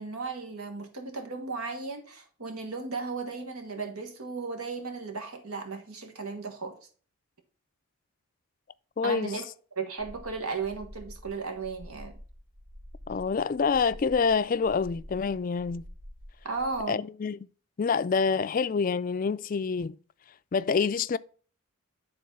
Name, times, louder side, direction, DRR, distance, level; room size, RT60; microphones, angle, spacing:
voice 1, 0.0-6.8 9.0-9.4 9.7-12.2 16.4-17.0, right 4 dB, 90° right, 1.5 m, -35 dB
voice 2, 9.0-9.3 13.1-15.8 16.9-17.4 17.8-20.0 20.5-21.2, left 5 dB, 40° left, 0.3 m, -27 dB
sound 1, 10.0-16.8, equal, 45° right, 3.0 m, -48 dB
10.5 x 3.9 x 5.4 m
head